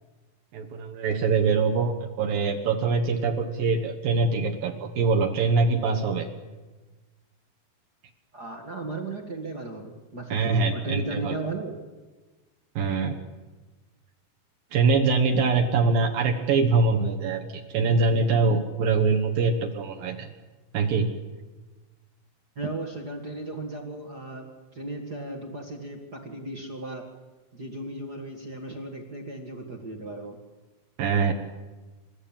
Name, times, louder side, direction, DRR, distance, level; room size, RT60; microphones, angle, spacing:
voice 1, 0.5-6.3 10.3-11.4 12.8-13.1 14.7-20.3 20.7-21.1 31.0-31.3, right 4 dB, 65° right, 2 dB, 2.8 m, -23 dB
voice 2, 8.3-11.8 22.5-27.1 27.5-30.4, right 2 dB, 40° right, 2 dB, 1.4 m, -36 dB
28.0 x 14.5 x 8.9 m, 1.2 s
omnidirectional pair, 4.9 m